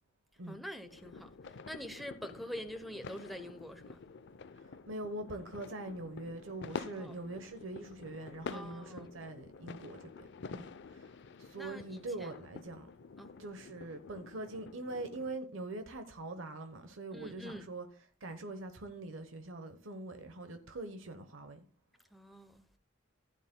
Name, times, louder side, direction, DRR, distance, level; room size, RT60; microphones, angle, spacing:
voice 1, 0.5-4.0 6.9-7.1 8.5-9.1 11.6-12.3 13.2-13.3 17.1-17.7 22.1-22.6, equal, ahead, 0.8 m, -45 dB
sound 1, 0.9-15.4, left 4 dB, 60° left, 0.6 m, -48 dB
voice 2, 4.6-11.1 11.4-12.9 13.4-17.9 18.2-21.7, right 2 dB, 75° right, 1.0 m, -43 dB
15.0 x 9.3 x 2.2 m
head